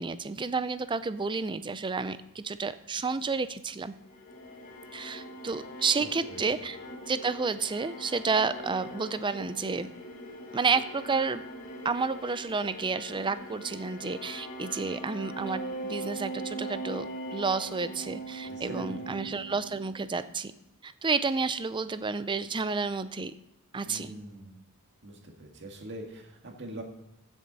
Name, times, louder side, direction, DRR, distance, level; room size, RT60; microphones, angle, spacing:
voice 1, 0.0-3.9 4.9-6.8 7.1-9.9 10.5-11.4 11.8-20.5 20.8-23.3 23.7-24.1, right 4 dB, 20° right, 13 dB, 0.5 m, -30 dB
sound 1, 4.0-20.3, right 1 dB, 35° left, 1.7 m, -41 dB
voice 2, 6.0-6.4 18.4-19.3 23.9-24.7 25.0-26.8, right 1 dB, 55° right, 2 dB, 1.9 m, -43 dB
15.5 x 7.2 x 4.1 m, 0.88 s
head